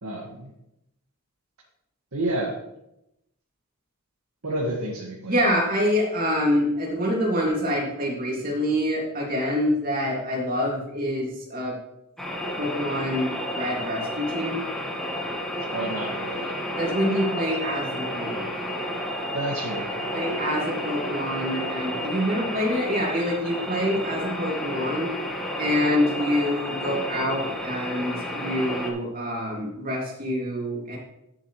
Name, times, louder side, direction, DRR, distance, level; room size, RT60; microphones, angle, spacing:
voice 1, 0.0-0.5 2.1-2.6 4.4-5.3 15.7-16.5 19.3-20.2, right 1 dB, 70° right, -4 dB, 1.9 m, -30 dB
voice 2, 5.3-11.8 12.6-14.6 16.8-18.6 20.1-25.1 25.6-31.0, equal, 40° right, -2 dB, 2.7 m, -26 dB
sound 1, 12.2-28.9, equal, ahead, 1.6 m, -31 dB
11.0 x 7.4 x 3.2 m, 0.85 s
head